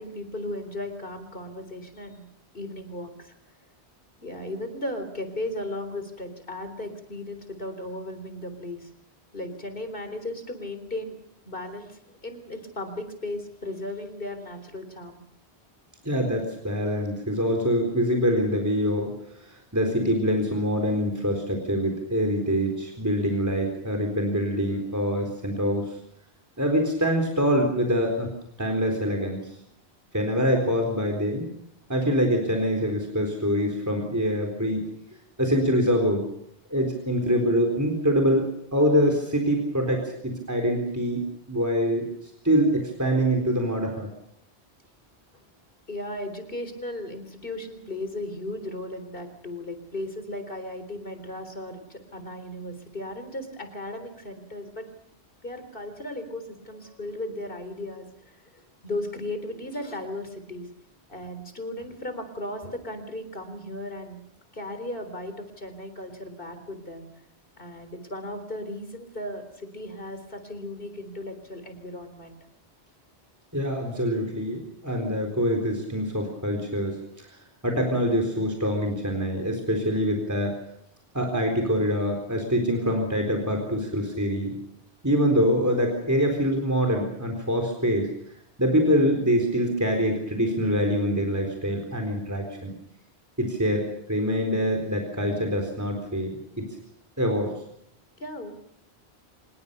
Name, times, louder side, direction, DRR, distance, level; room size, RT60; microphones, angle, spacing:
voice 1, 0.0-2.3 2.5-3.3 4.2-8.9 9.3-11.2 11.5-15.2 45.9-54.9 55.4-60.7 61.1-64.2 64.5-67.1 67.6-72.4 98.2-98.6, left 1 dB, 55° left, 8 dB, 4.0 m, -36 dB
voice 2, 16.0-26.0 26.6-28.3 28.6-29.4 30.1-31.5 31.9-34.8 35.4-36.2 36.7-38.4 38.7-41.2 41.5-42.0 42.4-44.1 73.5-77.3 77.6-80.5 81.1-84.6 85.0-88.1 88.6-92.7 93.4-96.6 97.2-97.5, equal, 15° right, 2 dB, 4.1 m, -25 dB
25.5 x 21.5 x 6.9 m, 0.73 s
omnidirectional pair, 1.1 m